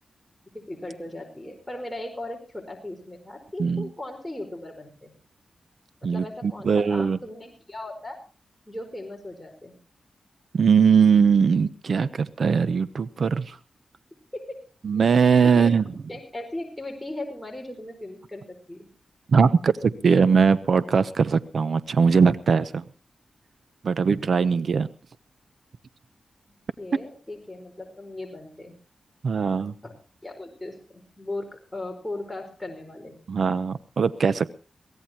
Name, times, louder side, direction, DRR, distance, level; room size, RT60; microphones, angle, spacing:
voice 1, 0.5-5.1 6.0-8.2 8.7-9.8 14.3-14.6 15.4-15.7 16.1-18.9 26.8-28.7 29.8-29.9 30.2-33.2, left 1 dB, 10° left, 2 dB, 4.6 m, -37 dB
voice 2, 6.0-7.2 10.5-13.6 14.8-15.8 19.3-22.8 23.8-24.9 29.2-29.7 33.3-34.5, right 6 dB, 70° right, 14 dB, 0.8 m, -20 dB
23.0 x 17.0 x 2.9 m, 0.34 s
cardioid pair, 70°, 0 cm